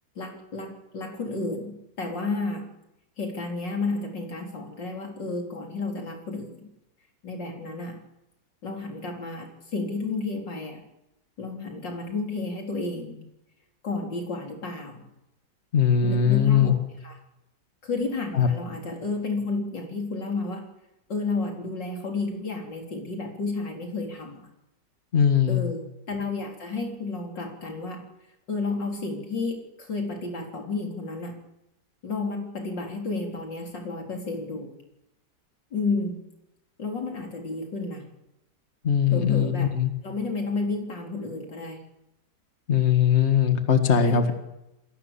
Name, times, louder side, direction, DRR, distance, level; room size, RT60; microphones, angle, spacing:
voice 1, 0.2-2.7 3.2-6.7 7.2-8.0 8.6-10.8 11.4-13.2 13.8-15.1 16.0-16.8 17.0-17.2 17.8-20.7 21.1-24.5 25.5-28.0 28.5-31.3 32.0-34.7 35.7-36.2 36.8-38.1 39.1-39.7 40.0-41.8 44.0-44.3, left 3 dB, 90° left, 1 dB, 4.6 m, -31 dB
voice 2, 15.7-16.7 18.3-18.5 25.1-25.6 38.8-39.9 42.7-44.3, left 8 dB, 40° left, 7 dB, 2.0 m, -20 dB
28.5 x 21.0 x 7.2 m, 0.92 s
omnidirectional pair, 1.9 m